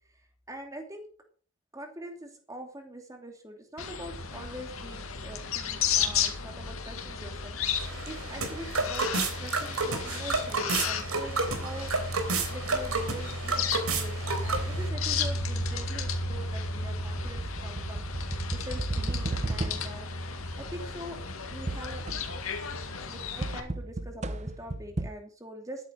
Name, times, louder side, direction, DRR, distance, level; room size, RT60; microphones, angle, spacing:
voice 1, 0.5-1.1 1.7-9.1 9.4-12.1 12.5-21.2 21.5-22.0 23.1-25.9, right 1 dB, 15° right, 3 dB, 2.7 m, -44 dB
sound 1, 3.8-23.6, left 4 dB, 80° left, 2.2 m, -33 dB
sound 2, 7.8-14.9, right 3 dB, 85° right, 3.7 m, -31 dB
sound 3, 14.5-20.1 21.7-22.5 23.4-25.1, right 2 dB, 30° right, 0.8 m, -35 dB
13.0 x 10.5 x 5.1 m, 0.43 s
head